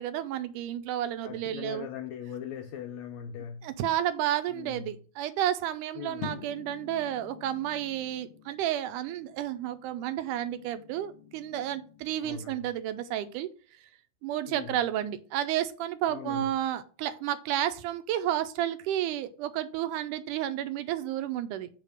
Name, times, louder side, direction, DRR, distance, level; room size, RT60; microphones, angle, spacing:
voice 1, 0.0-1.9 3.6-13.9 14.2-21.7, right 11 dB, 80° right, 2.0 m, -31 dB
voice 2, 1.2-3.7 4.5-5.0 6.0-6.4 12.2-12.7 14.5-14.8 16.1-16.5, left 8 dB, 85° left, 1.5 m, -40 dB
sound 1, 6.2-12.4, left 9 dB, 70° left, 1.4 m, -48 dB
8.3 x 3.2 x 6.4 m
omnidirectional pair, 3.9 m